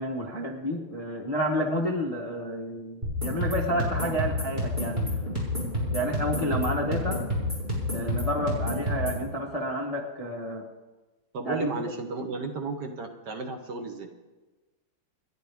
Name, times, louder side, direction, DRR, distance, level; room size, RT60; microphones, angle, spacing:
voice 1, 0.0-5.3 5.9-7.2 7.9-10.7 11.4-11.7, equal, 25° left, -1 dB, 0.8 m, -30 dB
sound 1, 3.0-9.2, left 1 dB, 15° right, 6.3 m, -29 dB
voice 2, 11.3-14.1, right 3 dB, 55° right, 4 dB, 1.6 m, -34 dB
29.0 x 10.5 x 3.5 m, 1.2 s
omnidirectional pair, 2.4 m